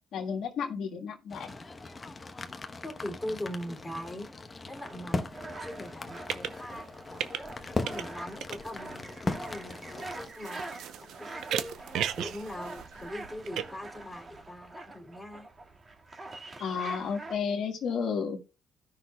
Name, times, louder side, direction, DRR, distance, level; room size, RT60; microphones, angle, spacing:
voice 1, 0.1-1.5 16.6-18.4, left 6 dB, 75° left, 1.6 m, -32 dB
sound 1, 1.3-10.3, left 3 dB, 25° left, 1.0 m, -38 dB
voice 2, 2.8-4.3 4.7-5.3 5.6-6.9 7.5-11.8 12.2-15.5, left 1 dB, 10° left, 2.8 m, -41 dB
sound 2, 3.5-3.6 4.0-4.1 5.9-6.8 7.1-8.1 8.4-13.6, right 10 dB, 80° right, 0.7 m, -37 dB
sound 3, 4.7-17.4, right 2 dB, 35° right, 1.9 m, -45 dB
16.5 x 5.8 x 2.3 m
cardioid pair, 90°, 0 cm